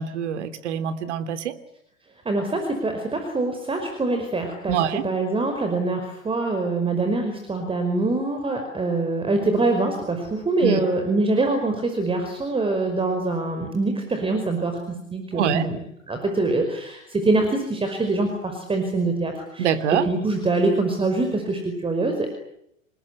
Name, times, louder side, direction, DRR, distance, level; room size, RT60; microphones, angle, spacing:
voice 1, 0.0-1.5 4.7-5.1 10.6-10.8 15.3-15.7 19.6-20.1, right 8 dB, 60° right, 11 dB, 3.1 m, -25 dB
voice 2, 2.3-15.8 16.1-22.3, right 2 dB, 15° right, 5 dB, 5.4 m, -24 dB
28.5 x 20.0 x 9.7 m, 0.76 s
figure-of-eight pair, 95°, 39 cm